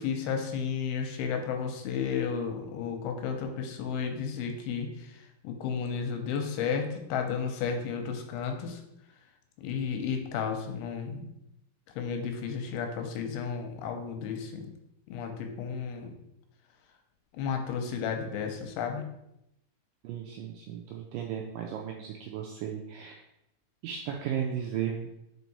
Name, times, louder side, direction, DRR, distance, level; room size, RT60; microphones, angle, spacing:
voice 1, 0.0-4.9 5.4-8.8 9.6-11.3 12.0-14.6 15.1-16.1 17.4-19.1, left 6 dB, 90° left, 5 dB, 2.6 m, -33 dB
voice 2, 20.0-23.2 23.8-25.1, right 9 dB, 85° right, 1 dB, 1.9 m, -35 dB
4.9 x 4.6 x 4.1 m, 0.83 s
omnidirectional pair, 4.4 m